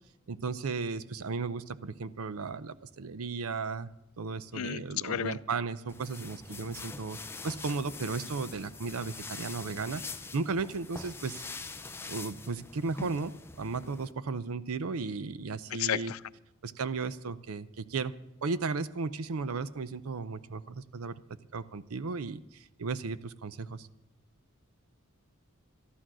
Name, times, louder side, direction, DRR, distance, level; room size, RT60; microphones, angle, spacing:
voice 1, 0.3-3.9 4.2-7.2 7.4-10.0 10.3-11.4 12.1-16.1 16.6-18.1 18.4-21.2 21.5-23.9, right 4 dB, 85° right, 15 dB, 0.6 m, -35 dB
voice 2, 4.5-5.4 15.8-16.2, left 10 dB, 75° left, 18 dB, 0.4 m, -32 dB
sound 1, 5.9-14.1, left 4 dB, 10° left, 0.4 m, -44 dB
13.0 x 11.5 x 6.1 m, 0.91 s
head